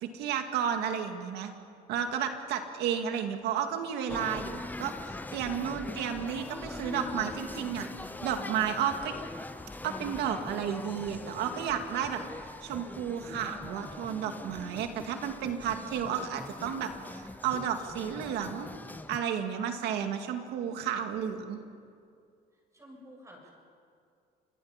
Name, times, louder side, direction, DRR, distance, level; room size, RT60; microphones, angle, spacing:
voice 1, 0.0-1.5 1.9-7.9 8.2-9.2 9.8-12.2 12.6-18.7 19.1-21.6, right 8 dB, 85° right, 6 dB, 2.1 m, -32 dB
sound 1, 4.1-19.2, left 2 dB, 10° left, 0.9 m, -42 dB
voice 2, 22.7-23.5, equal, 20° right, -1 dB, 7.5 m, -51 dB
27.5 x 20.5 x 5.9 m, 2.3 s
cardioid pair, 110°, 17 cm